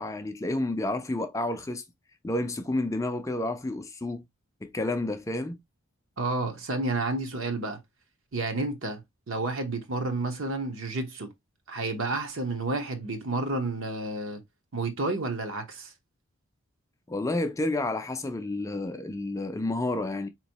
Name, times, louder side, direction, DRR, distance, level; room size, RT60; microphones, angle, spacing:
voice 1, 0.0-1.8 2.2-4.2 4.6-5.6 17.1-20.3, left 2 dB, 15° left, 0.3 m, -30 dB
voice 2, 6.2-7.8 8.3-9.0 9.3-11.3 11.7-14.4 14.7-15.9, right 2 dB, 60° right, 0.9 m, -30 dB
4.3 x 2.9 x 2.8 m
head